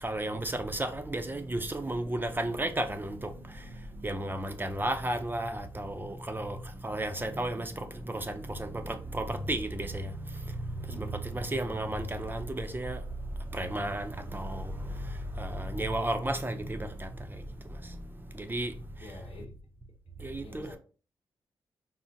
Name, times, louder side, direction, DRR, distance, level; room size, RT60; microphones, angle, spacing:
voice 1, 0.0-3.7 4.0-6.6 6.8-10.5 10.9-13.0 13.5-14.7 15.4-17.4 18.3-18.7 20.2-20.8, right 1 dB, 20° right, 0.5 m, -33 dB
voice 2, 10.9-11.5 19.0-19.5 20.2-20.8, left 2 dB, 75° left, 0.9 m, -49 dB
3.8 x 2.0 x 2.6 m
supercardioid pair, 45°, 9 cm